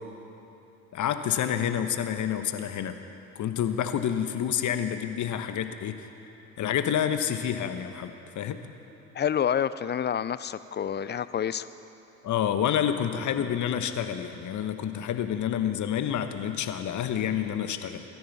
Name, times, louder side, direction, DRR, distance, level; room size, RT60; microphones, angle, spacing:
voice 1, 0.9-3.0 3.3-6.1 6.6-8.6 12.2-18.0, left 9 dB, 50° left, 8 dB, 1.2 m, -28 dB
voice 2, 9.1-11.7, left 8 dB, 25° left, 15 dB, 0.5 m, -28 dB
25.0 x 14.0 x 4.2 m, 3.0 s
hypercardioid pair, 55°, 39 cm